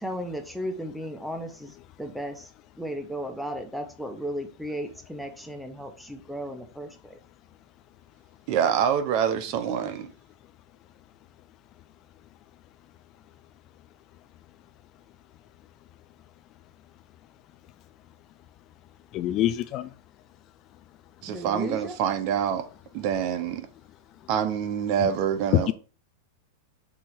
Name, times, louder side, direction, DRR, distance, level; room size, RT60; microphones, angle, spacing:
voice 1, 0.0-1.7 2.0-2.5 2.8-7.2 21.3-21.9, equal, ahead, 1.1 m, -35 dB
voice 2, 8.5-10.1 21.2-22.6 22.9-23.7 24.3-25.7, right 8 dB, 45° right, 1.1 m, -26 dB
voice 3, 19.1-19.9, left 13 dB, 35° left, 0.4 m, -26 dB
6.1 x 4.2 x 4.8 m
supercardioid pair, 145°, 0 cm